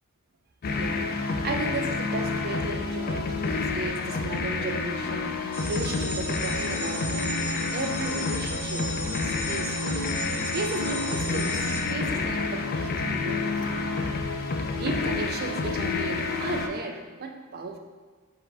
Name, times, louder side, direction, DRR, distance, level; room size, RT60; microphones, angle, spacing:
sound 1, 0.6-16.7, left 3 dB, 45° left, 0.3 m, -29 dB
voice 1, 0.8-7.3 7.7-13.6 14.7-17.8, right 3 dB, 45° right, 5 dB, 0.4 m, -35 dB
sound 2, 5.5-11.8, equal, 10° left, 0.7 m, -36 dB
4.7 x 2.4 x 4.0 m, 1.5 s
head